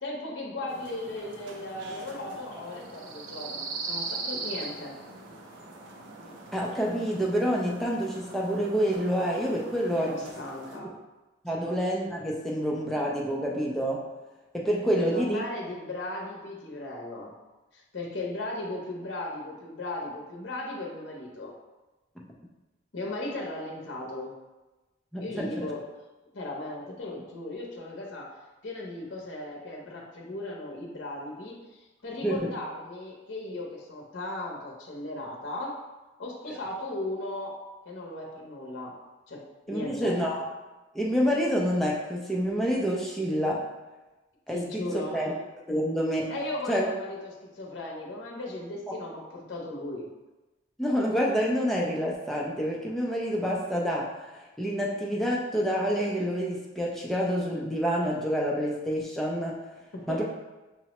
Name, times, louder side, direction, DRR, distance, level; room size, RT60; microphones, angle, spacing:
voice 1, 0.0-5.0 9.9-10.9 11.5-11.7 14.8-17.3 17.7-21.5 22.9-24.3 25.2-25.8 26.3-28.3 28.6-35.8 36.2-37.6 37.9-38.9 39.3-40.2 44.5-45.3 46.3-50.1 59.9-60.2, left 2 dB, 65° left, -2 dB, 0.7 m, -37 dB
sound 1, 0.7-10.8, right 3 dB, 70° right, 0.5 m, -41 dB
voice 2, 6.5-10.3 11.4-14.1 14.5-15.4 25.1-25.7 32.2-32.5 39.7-40.4 40.9-43.6 44.5-44.8 45.1-45.3 45.7-46.3 46.7-46.8 50.8-59.6 60.1-60.2, equal, ahead, -3 dB, 0.4 m, -28 dB
5.6 x 2.0 x 2.9 m, 1.1 s
head